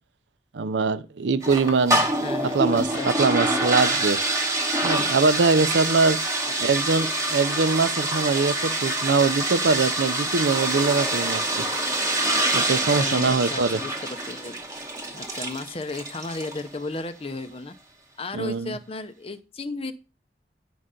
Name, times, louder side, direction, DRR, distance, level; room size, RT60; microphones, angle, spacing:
voice 1, 0.5-2.1 2.5-4.2 4.8-6.2 6.6-11.6 12.5-13.8 18.3-18.7, right 4 dB, 80° right, 0.5 m, -23 dB
sound 1, 1.4-16.7, right 1 dB, 20° right, 1.0 m, -26 dB
voice 2, 2.2-3.4 6.5-6.6 11.7-11.9 12.9-14.6 15.1-17.7 18.2-19.9, left 3 dB, 30° left, 0.6 m, -34 dB
9.4 x 5.5 x 3.7 m
head